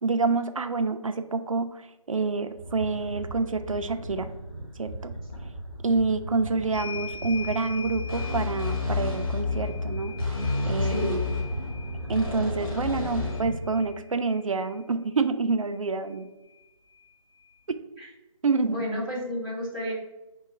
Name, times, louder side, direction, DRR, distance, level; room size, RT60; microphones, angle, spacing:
voice 1, 0.0-4.3 4.8-5.1 5.8-10.1 10.7-11.0 12.1-16.3 17.7-17.8 18.4-18.7, right 4 dB, 65° right, 8 dB, 0.4 m, -27 dB
sound 1, 2.5-14.0, right 1 dB, 15° left, 0.9 m, -38 dB
sound 2, 6.7-14.8 16.1-16.2 16.5-17.6, left 5 dB, 70° left, 0.6 m, -43 dB
sound 3, 7.8-13.4, left 4 dB, 40° left, 1.4 m, -30 dB
voice 2, 10.8-11.4 18.0-18.1 18.7-19.9, equal, ahead, -16 dB, 0.5 m, -31 dB
4.8 x 2.2 x 4.5 m, 1.0 s
figure-of-eight pair, 155°, 18 cm